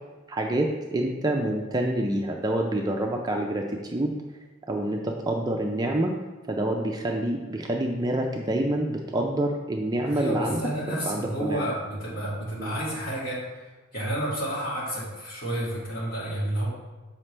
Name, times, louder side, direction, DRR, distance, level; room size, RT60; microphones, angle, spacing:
voice 1, 0.3-4.2 4.7-6.1 6.5-10.6 11.1-11.7 12.6-12.7, right 1 dB, 20° right, 1 dB, 0.4 m, -27 dB
voice 2, 10.1-13.4 13.9-16.7, right 1 dB, 45° left, -7 dB, 2.2 m, -30 dB
7.3 x 5.1 x 3.2 m, 1.2 s
head